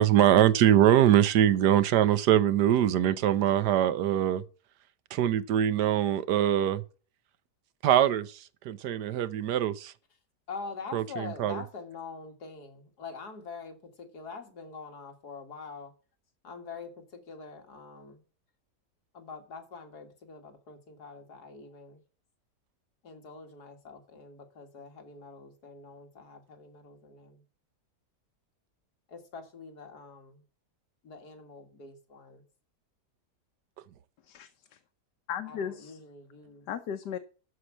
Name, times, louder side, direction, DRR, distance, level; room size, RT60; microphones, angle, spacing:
voice 1, 0.0-4.4 5.1-6.8 7.8-9.9 10.9-11.6, right 11 dB, 80° right, 1.4 m, -23 dB
voice 2, 10.5-15.9 16.4-18.2 19.1-22.0 23.0-27.4 29.1-30.4 31.0-32.4 35.5-36.7, left 4 dB, 70° left, 2.4 m, -45 dB
voice 3, 34.3-34.8 35.3-36.0 36.7-37.2, left 8 dB, 85° left, 1.4 m, -36 dB
13.0 x 4.8 x 7.3 m
omnidirectional pair, 1.8 m